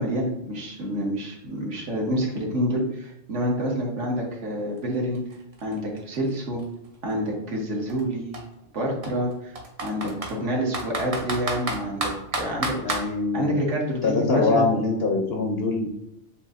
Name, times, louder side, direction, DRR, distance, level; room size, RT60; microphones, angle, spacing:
voice 1, 0.0-5.2 5.6-6.6 7.0-8.3 8.7-9.5 9.8-14.7, equal, 65° right, -1 dB, 1.3 m, -28 dB
Computer keyboard, 4.8-4.9 5.1-7.1 7.9-8.0 8.3-8.4 9.0-10.3 10.7-13.1, right 2 dB, 45° right, 0.5 m, -30 dB
voice 2, 12.8-13.5 14.0-15.9, left 3 dB, 60° left, 1 dB, 0.7 m, -23 dB
7.2 x 2.6 x 2.4 m, 0.84 s
omnidirectional pair, 1.4 m